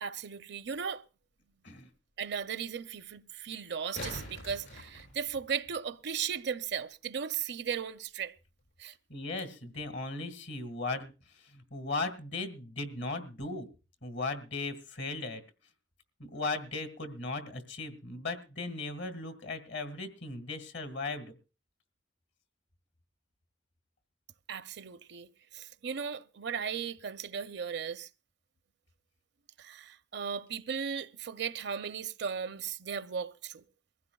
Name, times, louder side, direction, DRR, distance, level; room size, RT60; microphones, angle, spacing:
voice 1, 0.0-1.0 2.2-8.3 8.8-8.9 24.5-28.1 29.6-33.6, right 7 dB, 65° right, 0.6 m, -36 dB
sound 1, 0.7-0.8 3.6-5.7 8.6-8.7, left 1 dB, 90° left, 6.8 m, -44 dB
voice 2, 9.1-13.7 14.0-15.4 16.2-21.4, left 3 dB, 65° left, 1.8 m, -37 dB
22.0 x 15.5 x 2.3 m
head